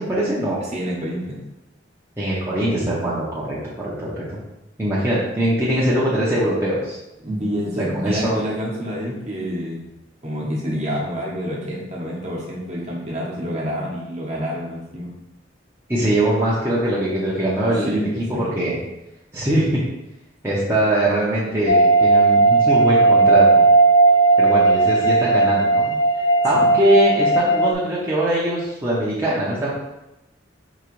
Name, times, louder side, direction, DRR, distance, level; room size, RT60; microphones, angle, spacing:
voice 1, 0.0-0.6 2.2-4.4 4.8-7.0 7.9-8.4 15.9-18.8 19.3-19.8 20.4-23.7 24.4-26.0 26.4-29.8, right 1 dB, 15° right, -8 dB, 0.7 m, -22 dB
voice 2, 0.7-1.4 7.2-9.8 10.2-15.1 17.8-18.0 18.3-18.7, equal, 40° right, -4 dB, 1.0 m, -27 dB
sound 1, 21.7-27.7, right 3 dB, 65° left, 0.4 m, -15 dB
4.8 x 2.9 x 3.0 m, 0.94 s
head